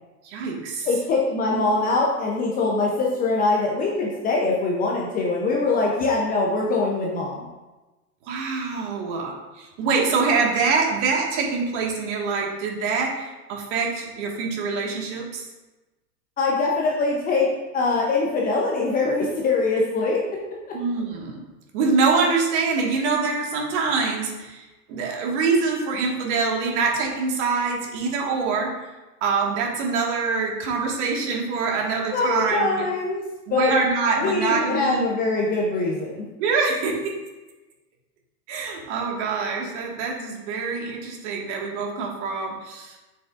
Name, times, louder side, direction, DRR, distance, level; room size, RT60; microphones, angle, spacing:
voice 1, 0.2-0.9 8.2-15.5 20.7-21.4 21.7-28.7 29.2-32.8 33.5-35.1 36.4-37.0 38.5-43.0, right 4 dB, 45° right, -1 dB, 1.9 m, -25 dB
voice 2, 0.8-7.5 16.4-17.5 17.7-20.2 32.1-33.2 33.5-33.7 34.2-36.3, left 3 dB, 20° left, -2 dB, 0.7 m, -23 dB
7.8 x 6.2 x 2.5 m, 1.1 s
hypercardioid pair, 125°, 48 cm